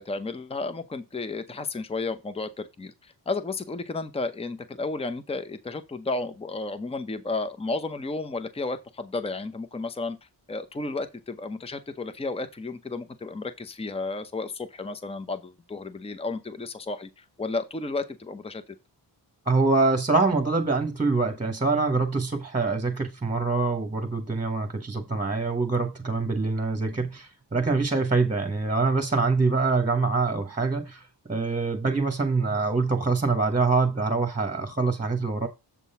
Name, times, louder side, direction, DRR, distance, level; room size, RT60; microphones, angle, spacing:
voice 1, 0.0-10.2 10.5-18.6, left 3 dB, 15° left, 0.7 m, -33 dB
voice 2, 19.5-35.5, right 3 dB, 15° right, 1.1 m, -25 dB
7.4 x 3.7 x 5.6 m
wide cardioid pair, 105°, 43 cm